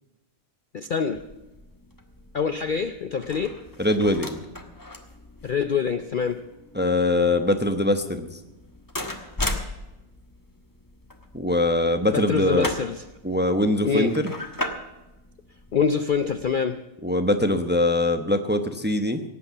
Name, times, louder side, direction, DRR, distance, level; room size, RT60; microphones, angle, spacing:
voice 1, 0.7-1.2 2.3-3.5 5.4-6.4 12.1-13.0 13.8-14.1 15.7-16.8, left 6 dB, 50° left, 10 dB, 0.6 m, -25 dB
sound 1, 1.1-16.6, left 2 dB, 15° left, 1.2 m, -38 dB
voice 2, 3.8-4.4 6.8-8.4 11.3-12.7 13.2-14.3 17.0-19.2, left 1 dB, 10° right, 7 dB, 0.7 m, -22 dB
17.5 x 8.3 x 7.2 m, 1.0 s
omnidirectional pair, 1.4 m